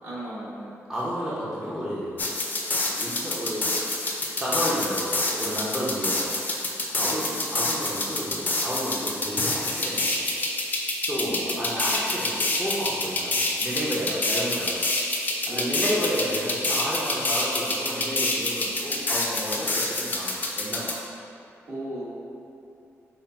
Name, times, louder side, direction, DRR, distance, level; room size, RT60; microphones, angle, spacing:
voice 1, 0.0-0.7 6.9-7.3 11.2-11.6 15.5-16.0 21.7-22.0, right 1 dB, 45° right, -8 dB, 1.4 m, -36 dB
voice 2, 0.9-2.3 3.0-3.7 4.4-6.6 6.9-10.4 11.0-14.8 15.1-20.9, equal, 10° right, -9 dB, 0.7 m, -31 dB
sound 1, 2.2-20.9, left 2 dB, 35° left, 0.6 m, -27 dB
5.5 x 2.1 x 4.3 m, 2.8 s
wide cardioid pair, 110°, 5 cm